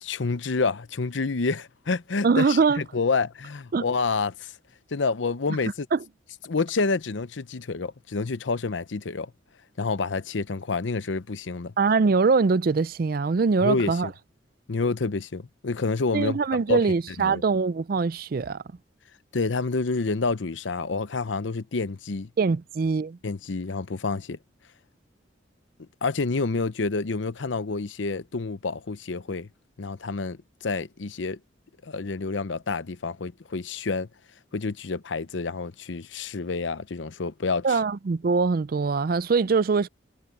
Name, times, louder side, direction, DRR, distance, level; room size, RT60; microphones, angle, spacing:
voice 1, 0.0-4.5 4.9-5.9 6.5-9.3 9.8-11.7 13.6-14.0 14.7-16.4 16.7-16.8 17.2-17.4 19.3-22.3 23.2-24.4 26.0-29.5 29.8-31.4 31.8-34.1 34.5-37.8, left 4 dB, 80° left, 0.7 m, -28 dB
voice 2, 2.2-2.8 3.7-3.8 5.9-6.0 11.8-14.1 16.1-18.6 22.4-23.2 37.6-39.9, right 4 dB, 50° right, 0.4 m, -23 dB
head